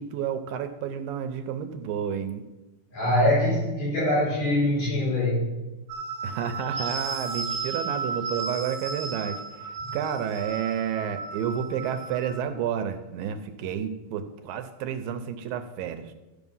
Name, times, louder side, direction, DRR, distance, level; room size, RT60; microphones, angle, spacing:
voice 1, 0.0-2.4 6.2-16.1, right 8 dB, 80° right, 8 dB, 2.3 m, -31 dB
voice 2, 2.9-5.6, left 1 dB, 70° left, -9 dB, 6.1 m, -23 dB
sound 1, 5.9-12.4, right 5 dB, 50° right, 1.3 m, -34 dB
14.0 x 6.1 x 5.4 m, 1.1 s
omnidirectional pair, 4.3 m